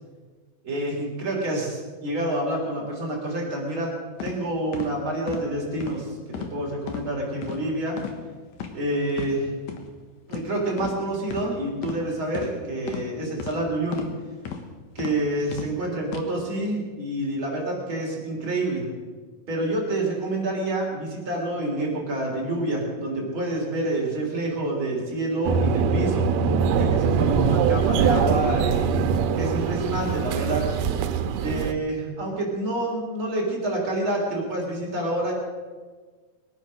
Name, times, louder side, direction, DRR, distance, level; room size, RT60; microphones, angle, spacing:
voice 1, 0.6-4.0 4.2-6.2 6.5-8.0 8.7-9.5 10.3-14.1 15.0-18.9 19.5-26.3 26.7-30.7 31.4-35.3, right 1 dB, 35° right, -2 dB, 4.0 m, -28 dB
sound 1, 4.2-4.3 4.7-4.9 5.3-5.4 5.8-6.0 6.3-6.5 6.9-7.0 7.4-7.6 8.0-8.2 8.5-8.7 9.1-9.3 9.7-9.8 10.3-10.5 10.8-11.0 11.3-11.5 11.8-12.0 12.3-12.5 12.9-13.0 13.4-13.6 13.9-14.1 14.5-14.6 15.0-15.1 15.5-15.7 16.1-16.2, left 8 dB, 60° left, 2.2 m, -34 dB
sound 2, 25.4-31.7, right 6 dB, 90° right, 2.8 m, -23 dB
21.5 x 9.1 x 6.4 m, 1.4 s
omnidirectional pair, 4.5 m